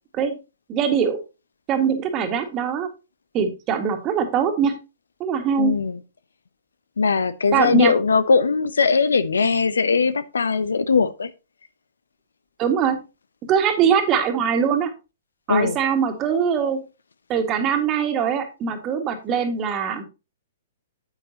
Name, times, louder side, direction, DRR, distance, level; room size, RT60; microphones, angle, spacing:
voice 1, 0.7-1.2 1.7-2.9 3.3-4.8 5.2-5.7 7.5-8.0 12.6-13.0 13.4-14.9 15.5-16.8 17.3-20.0, right 7 dB, 30° right, 1.9 m, -22 dB
voice 2, 5.6-6.0 7.0-11.3 15.5-15.8, left 5 dB, 75° left, 0.7 m, -20 dB
9.0 x 8.9 x 2.9 m
figure-of-eight pair, 115°, 0 cm